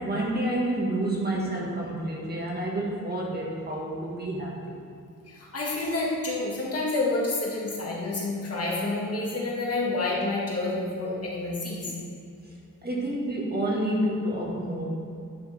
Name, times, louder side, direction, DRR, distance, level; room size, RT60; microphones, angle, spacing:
voice 1, 0.0-4.8 12.8-14.8, right 1 dB, 30° right, -3 dB, 1.7 m, -29 dB
voice 2, 5.3-11.9, left 2 dB, 50° left, -4 dB, 1.9 m, -29 dB
10.0 x 6.5 x 3.5 m, 2.5 s
wide cardioid pair, 110°, 32 cm